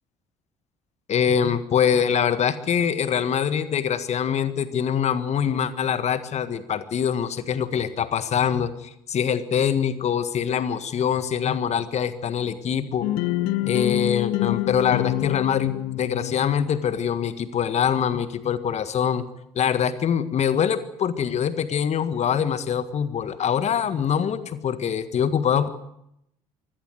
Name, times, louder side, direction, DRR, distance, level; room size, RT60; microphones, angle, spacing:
voice 1, 1.1-13.1 13.6-19.3 19.5-25.7, left 8 dB, 40° left, 13 dB, 1.7 m, -24 dB
sound 1, 13.0-17.0, left 16 dB, 60° left, 0.9 m, -27 dB
24.0 x 17.0 x 8.1 m, 0.79 s
figure-of-eight pair, 55°, 17 cm